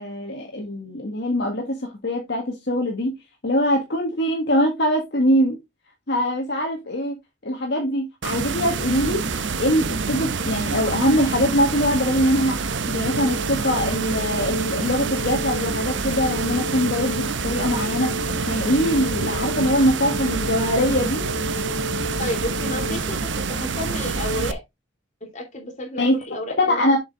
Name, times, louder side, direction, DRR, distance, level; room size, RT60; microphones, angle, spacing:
voice 1, 0.0-1.8 2.0-3.1 3.4-5.6 6.1-7.2 7.5-9.2 9.6-12.6 12.9-18.1 18.5-21.2 26.0-26.1 26.6-27.0, equal, 55° left, 1.7 m, -22 dB
sound 1, 8.2-24.5, right 4 dB, 65° right, 0.8 m, -27 dB
sound 2, 13.0-23.0, left 2 dB, 80° left, 0.9 m, -33 dB
voice 2, 22.2-24.6 25.2-26.8, left 1 dB, 35° left, 3.0 m, -31 dB
7.6 x 5.9 x 3.8 m
head